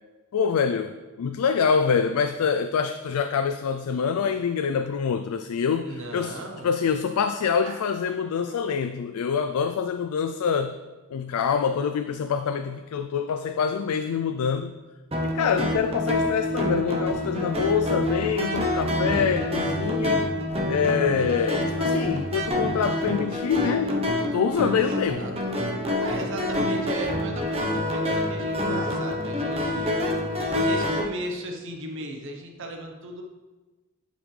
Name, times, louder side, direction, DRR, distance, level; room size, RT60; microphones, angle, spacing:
voice 1, 0.3-0.9 1.2-10.8 11.1-14.7 15.2-20.3 20.7-24.0 24.3-25.2, left 6 dB, 80° left, 9 dB, 0.4 m, -25 dB
voice 2, 5.8-6.7 7.6-7.9 8.5-8.7 24.7-29.9 30.6-33.2, right 1 dB, 60° right, 2 dB, 0.9 m, -36 dB
sound 1, 15.1-31.0, left 1 dB, 25° right, 0.9 m, -27 dB
11.0 x 5.1 x 3.3 m, 1.2 s
head